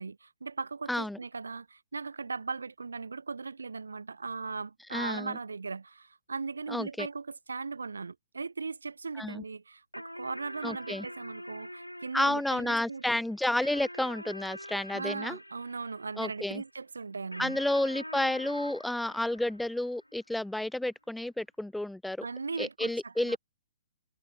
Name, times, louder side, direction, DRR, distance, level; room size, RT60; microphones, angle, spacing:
voice 1, 0.0-13.0 14.9-17.6 22.2-23.4, right 4 dB, 70° right, 0.9 m, -38 dB
voice 2, 0.9-1.2 4.9-5.4 6.7-7.1 9.2-9.4 10.6-11.1 12.1-15.4 16.2-16.6 17.4-22.3 22.6-23.4, left 1 dB, ahead, 0.3 m, -31 dB
sound 1, 9.9-16.6 17.3-20.1, equal, 90° left, 3.6 m, -45 dB
figure-of-eight pair, 120°, 0 cm